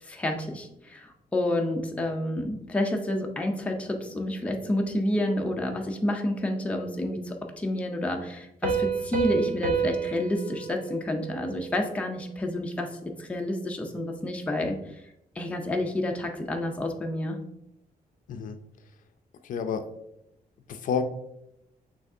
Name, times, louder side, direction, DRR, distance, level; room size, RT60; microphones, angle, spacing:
voice 1, 0.0-15.0 15.4-17.4, left 1 dB, 10° left, 2 dB, 0.5 m, -29 dB
Piano, 8.6-12.1, right 5 dB, 55° right, 0.8 m, -30 dB
voice 2, 19.4-19.8 20.7-21.0, left 6 dB, 65° left, 8 dB, 0.4 m, -29 dB
5.8 x 3.2 x 2.6 m, 0.82 s
wide cardioid pair, 175°, 15 cm